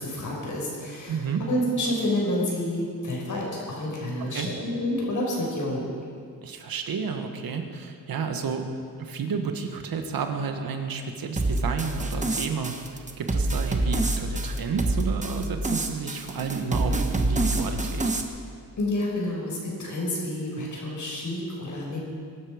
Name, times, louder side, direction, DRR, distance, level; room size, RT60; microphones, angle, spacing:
voice 1, 0.0-5.9 18.8-22.0, left 1 dB, 55° left, -2 dB, 5.5 m, -29 dB
voice 2, 1.1-1.4 4.3-4.5 6.4-8.7 9.0-12.7 13.2-18.0, right 5 dB, 80° right, 5 dB, 1.7 m, -31 dB
sound 1, 11.4-18.2, right 2 dB, 20° right, 1.3 m, -27 dB
22.5 x 12.0 x 5.2 m, 2.3 s
wide cardioid pair, 115°, 35 cm